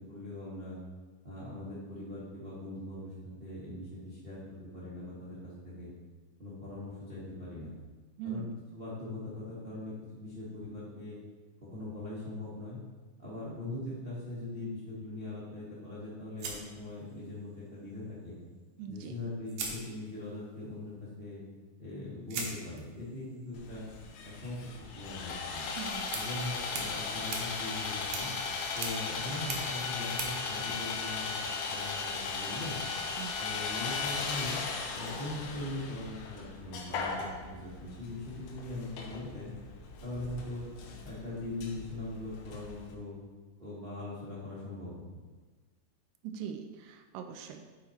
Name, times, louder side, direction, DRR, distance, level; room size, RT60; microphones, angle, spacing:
voice 1, 0.1-0.8 1.2-3.1 3.4-5.9 6.4-7.7 8.2-8.4 8.7-11.2 11.6-12.8 13.2-18.4 18.9-21.4 21.8-23.8 24.2-25.6 26.1-28.3 28.7-31.2 31.7-32.8 33.4-34.6 34.9-39.5 40.0-40.7 41.0-43.1 43.6-44.9, left 2 dB, 45° right, -9 dB, 0.7 m, -41 dB
voice 2, 8.2-8.6 18.8-19.2 25.8-26.1 33.2-33.4 46.2-47.6, right 7 dB, 85° right, 6 dB, 2.2 m, -41 dB
sound 1, 16.4-17.5 18.9-19.0 19.5-20.5 22.3-31.5, right 4 dB, 70° right, 2.0 m, -43 dB
Sawing, 23.6-42.9, left 4 dB, 85° left, 2.4 m, -37 dB
8.3 x 4.0 x 4.3 m, 1.3 s
omnidirectional pair, 3.8 m